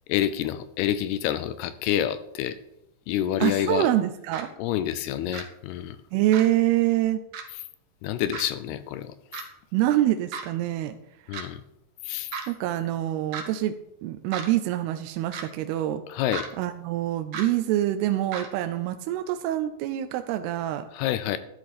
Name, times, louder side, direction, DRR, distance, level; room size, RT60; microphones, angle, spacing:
voice 1, 0.1-2.6 3.1-3.9 4.6-6.0 8.0-9.1 11.3-11.6 12.0-12.3 16.1-16.5 20.9-21.4, left 11 dB, 80° left, 13 dB, 2.5 m, -27 dB
voice 2, 3.4-4.5 6.1-7.2 9.7-10.9 12.5-13.7 14.0-16.0 16.6-20.9, right 13 dB, 80° right, 8 dB, 2.5 m, -25 dB
sound 1, 4.3-4.4 5.3-5.4 6.3-6.5 7.3-7.4 8.3-8.4 9.3-9.4 10.3-10.5 11.3-11.4 12.3-12.5 13.3-13.4 14.3-14.5 15.3-15.5 16.3-16.5 17.3-17.5 18.3-18.5, right 5 dB, 60° right, 2.4 m, -34 dB
13.0 x 11.0 x 4.2 m, 0.85 s
omnidirectional pair, 4.9 m